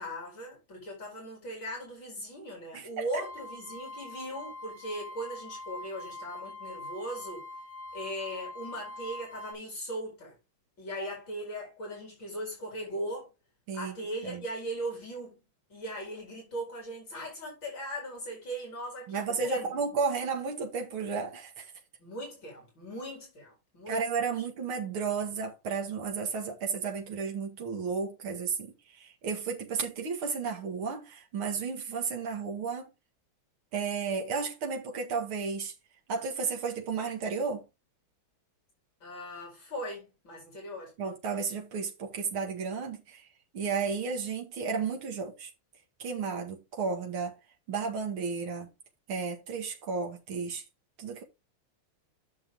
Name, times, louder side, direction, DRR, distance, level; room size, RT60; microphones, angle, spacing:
voice 1, 0.0-7.4 7.9-10.4 10.8-13.3 13.7-15.4 15.7-19.7 22.0-24.2 39.0-40.9, right 1 dB, 65° left, 5.2 m, -39 dB
voice 2, 2.7-3.0 13.7-13.9 14.2-14.4 19.1-21.7 23.9-32.9 33.7-35.7 36.1-37.6 41.0-43.3 43.5-45.5 46.0-47.3 47.7-48.7 49.1-50.6 51.0-51.2, right 5 dB, 80° right, 2.7 m, -33 dB
sound 1, 3.1-9.5, left 2 dB, 30° left, 3.9 m, -43 dB
9.4 x 6.6 x 3.8 m
omnidirectional pair, 2.3 m